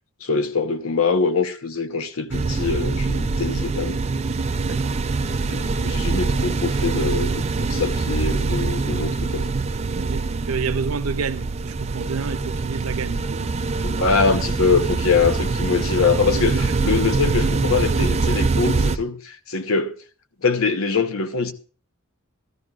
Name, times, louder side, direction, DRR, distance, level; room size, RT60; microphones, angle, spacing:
voice 1, 0.2-4.0 4.7-4.8 5.4-9.5 13.8-19.9 20.4-21.5, left 4 dB, 70° left, 0.8 m, -23 dB
sound 1, 2.3-19.0, right 3 dB, 30° right, 0.4 m, -24 dB
voice 2, 4.7-5.0 9.9-13.5 16.5-16.7, right 5 dB, 80° right, 0.7 m, -29 dB
13.5 x 13.5 x 2.4 m
head